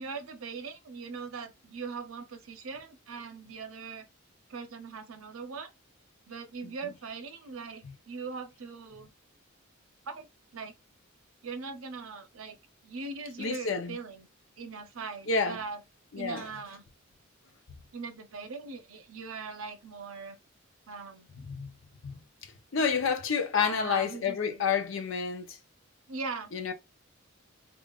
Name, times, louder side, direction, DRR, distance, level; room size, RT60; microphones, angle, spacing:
voice 1, 0.0-4.1 4.5-5.7 6.3-9.1 10.1-10.7 11.4-12.6 12.8-14.3 14.6-15.8 16.1-16.8 17.9-20.4 20.9-21.5 23.7-24.6 26.1-26.5, right 4 dB, 90° right, 0.8 m, -40 dB
voice 2, 13.4-14.0 15.3-15.6 16.1-16.5 21.3-21.7 22.0-25.6 26.5-26.7, left 5 dB, 70° left, 0.7 m, -30 dB
4.8 x 2.4 x 2.4 m
head